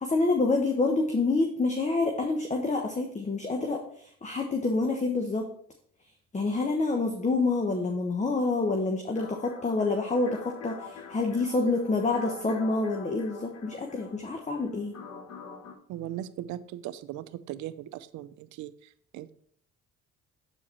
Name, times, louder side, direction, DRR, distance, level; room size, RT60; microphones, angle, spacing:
voice 1, 0.0-5.5 6.3-14.9, left 3 dB, 25° left, 3 dB, 1.1 m, -27 dB
sound 1, 9.1-15.8, left 6 dB, 60° left, 1.2 m, -46 dB
voice 2, 15.9-19.3, right 12 dB, 70° right, 14 dB, 0.6 m, -39 dB
7.9 x 4.8 x 4.4 m, 0.63 s
supercardioid pair, 70°, 30 cm